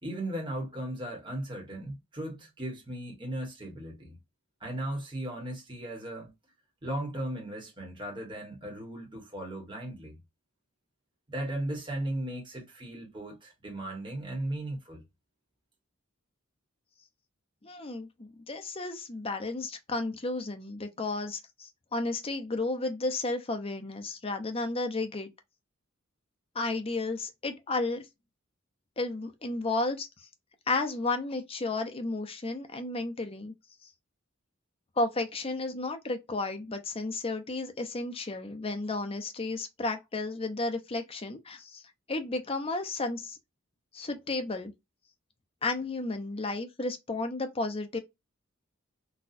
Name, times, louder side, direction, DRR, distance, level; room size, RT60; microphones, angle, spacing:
voice 1, 0.0-4.2 4.6-6.3 6.8-10.2 11.3-15.0, right 1 dB, 25° right, 1.2 m, -36 dB
voice 2, 17.6-25.3 26.5-28.0 29.0-30.1 30.7-33.5 35.0-41.8 42.1-43.4 43.9-44.7 45.6-48.0, left 2 dB, 30° left, 0.6 m, -33 dB
4.1 x 2.3 x 2.5 m
head